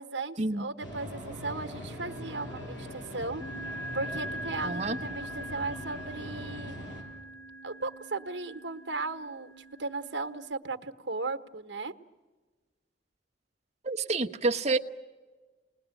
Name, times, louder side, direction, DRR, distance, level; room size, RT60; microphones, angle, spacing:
voice 1, 0.0-3.4 3.9-6.7 7.6-11.9, right 3 dB, 65° right, 7 dB, 1.3 m, -36 dB
sound 1, 0.8-7.0, left 1 dB, 85° left, 6.4 m, -41 dB
sound 2, 2.1-2.5 3.4-10.5, right 1 dB, 15° left, 2.6 m, -42 dB
voice 2, 4.6-5.0 13.8-14.8, right 3 dB, 35° right, 3 dB, 1.1 m, -28 dB
29.5 x 20.5 x 9.1 m, 1.4 s
head